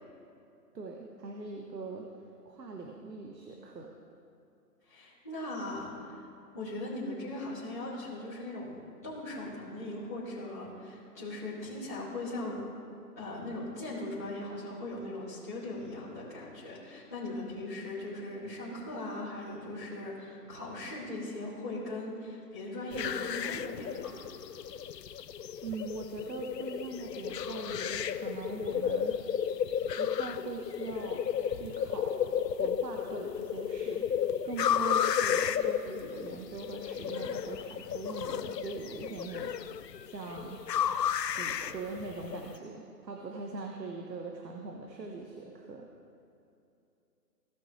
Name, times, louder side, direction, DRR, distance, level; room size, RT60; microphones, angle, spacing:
voice 1, 0.7-2.1 2.4-3.9 25.6-29.2 30.0-32.2 32.6-34.1 34.4-39.6 40.0-40.6 41.4-45.9, right 3 dB, 90° right, 1 dB, 1.4 m, -41 dB
voice 2, 4.8-6.3 6.5-12.6 13.2-24.1, left 1 dB, 10° left, -16 dB, 1.1 m, -39 dB
sound 1, 22.9-42.5, left 8 dB, 85° left, 0.7 m, -33 dB
17.5 x 6.0 x 3.3 m, 2.7 s
hypercardioid pair, 175°, 49 cm